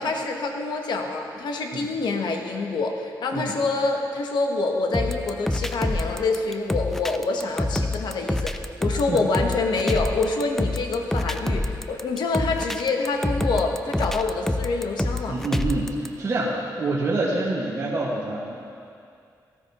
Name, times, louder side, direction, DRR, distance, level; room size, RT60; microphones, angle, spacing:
voice 1, 0.0-15.4, left 3 dB, 80° left, 3 dB, 1.1 m, -26 dB
sound 1, 4.9-16.1, left 1 dB, 5° left, 0.4 m, -27 dB
voice 2, 15.3-18.5, right 2 dB, 45° right, -7 dB, 1.6 m, -27 dB
15.0 x 13.0 x 3.0 m, 2.4 s
wide cardioid pair, 115°, 7 cm